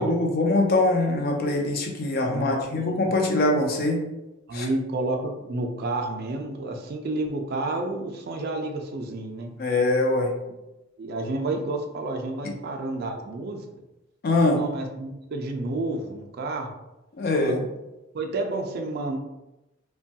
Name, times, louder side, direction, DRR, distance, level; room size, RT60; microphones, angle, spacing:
voice 1, 0.0-4.1 4.5-4.7 9.6-10.3 12.4-12.5 14.2-14.6 17.2-17.6, left 2 dB, 45° left, 2 dB, 0.4 m, -23 dB
voice 2, 2.3-3.1 4.5-9.5 11.0-13.6 14.5-16.7 17.4-17.7 18.1-19.2, right 2 dB, 45° right, 3 dB, 0.3 m, -30 dB
3.0 x 2.2 x 2.7 m, 0.97 s
head